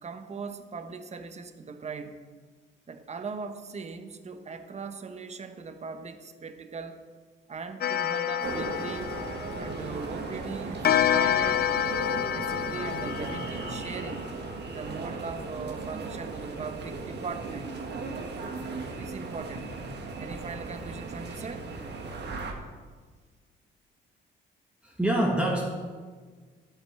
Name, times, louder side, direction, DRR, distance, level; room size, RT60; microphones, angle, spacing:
voice 1, 0.0-2.2 2.9-7.0 7.5-9.2 9.6-11.7 12.3-14.3 14.7-17.9 19.0-19.8 20.2-21.7, right 4 dB, 35° right, 8 dB, 1.0 m, -39 dB
Clock, 7.8-10.1 10.8-14.2, left 10 dB, 50° left, 0.5 m, -28 dB
sound 1, 8.4-22.5, right 3 dB, 60° right, 1.8 m, -37 dB
voice 2, 24.8-25.7, right 1 dB, 5° right, -3 dB, 1.8 m, -26 dB
11.0 x 8.4 x 6.8 m, 1.5 s
cardioid pair, 90°, 20 cm